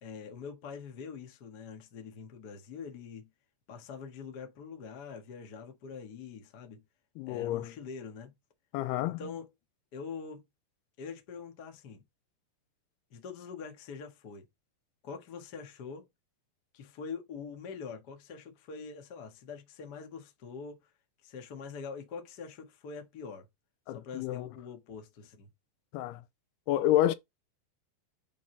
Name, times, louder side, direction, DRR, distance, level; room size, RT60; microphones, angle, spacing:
voice 1, 0.0-3.3 3.7-6.8 7.3-8.3 9.1-9.5 9.9-10.4 11.0-12.0 13.1-14.5 15.0-16.0 16.7-20.9 21.2-23.5 23.9-25.5, left 5 dB, 60° left, 1.0 m, -44 dB
voice 2, 7.2-7.8 8.7-9.3 23.9-24.5 25.9-26.2 26.7-27.2, left 13 dB, 90° left, 2.7 m, -29 dB
8.4 x 4.0 x 3.9 m
omnidirectional pair, 4.6 m